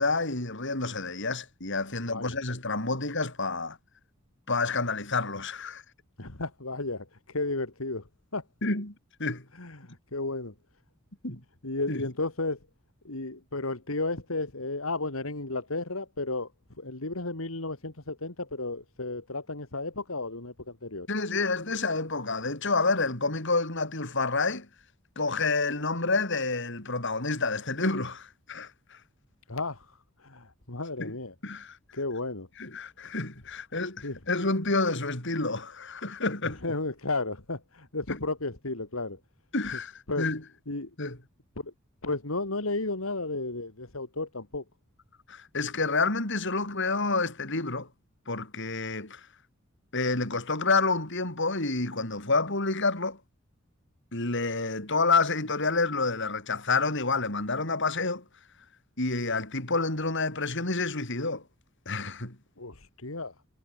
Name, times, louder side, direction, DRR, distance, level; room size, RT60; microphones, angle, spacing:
voice 1, 0.0-3.8 4.5-5.8 8.6-8.9 9.2-9.5 11.2-11.4 11.9-12.0 21.1-24.7 25.2-29.0 31.0-31.2 31.4-31.8 32.6-36.6 38.1-38.2 39.5-40.4 41.0-41.2 45.3-47.9 48.3-49.3 49.9-53.2 54.1-58.2 59.0-61.4 61.9-62.4, left 3 dB, 60° left, 5.9 m, -29 dB
voice 2, 6.2-8.1 8.3-8.4 9.5-10.5 11.6-12.6 13.0-16.5 16.8-21.1 29.5-31.3 31.9-32.5 34.0-34.2 36.6-39.2 40.1-40.2 40.7-40.9 41.6-41.7 42.0-44.6 62.6-63.3, left 2 dB, 85° left, 2.8 m, -33 dB
head